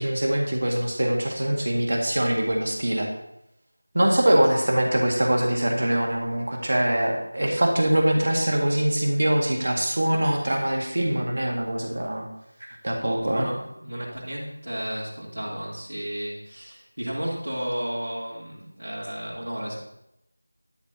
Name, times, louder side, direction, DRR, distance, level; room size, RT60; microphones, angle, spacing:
voice 1, 0.0-3.1 3.9-12.3 12.6-13.5, right 1 dB, 50° right, 1 dB, 1.8 m, -23 dB
voice 2, 13.2-19.8, equal, 70° right, -8 dB, 3.2 m, -33 dB
11.5 x 4.5 x 6.9 m, 0.83 s
figure-of-eight pair, 175°, 0 cm